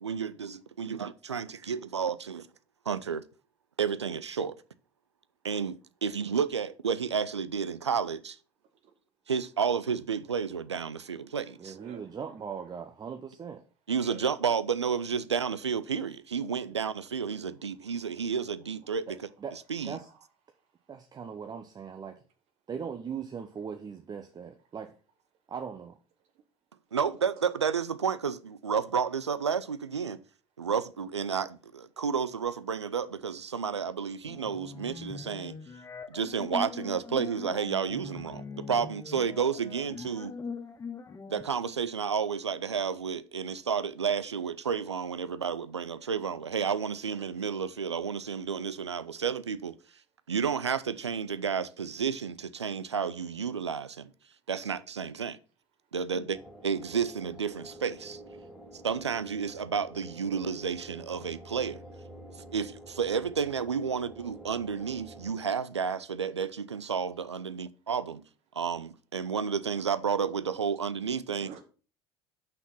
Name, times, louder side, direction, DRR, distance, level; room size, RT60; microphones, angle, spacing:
voice 1, 0.0-2.5 2.9-3.2 3.8-4.6 5.4-8.4 9.3-11.8 13.9-19.3 19.7-20.0 26.9-30.2 30.6-35.6 36.1-40.3 41.3-49.7 50.3-54.1 54.5-55.4 55.9-56.4 56.6-58.2 58.8-61.8 62.5-68.2 68.5-71.5, right 6 dB, 90° right, 0.4 m, -31 dB
voice 2, 6.0-6.7 8.8-8.9 9.4-9.6 10.5-12.7 14.0-14.2 17.7-20.6 24.6-24.7 27.0-27.7 54.7-54.8 56.1-56.3 57.1-57.3 71.3-71.6, right 8 dB, 50° right, 1.0 m, -55 dB
voice 3, 11.6-13.6 19.4-19.6 19.8-20.1 20.9-22.1 22.7-25.0 25.5-25.9, right 6 dB, 30° right, 0.8 m, -39 dB
sound 1, 34.3-41.4, left 5 dB, 20° left, 0.8 m, -42 dB
sound 2, 56.3-65.3, right 1 dB, 5° right, 2.9 m, -48 dB
5.9 x 5.9 x 5.3 m
figure-of-eight pair, 65°, 14 cm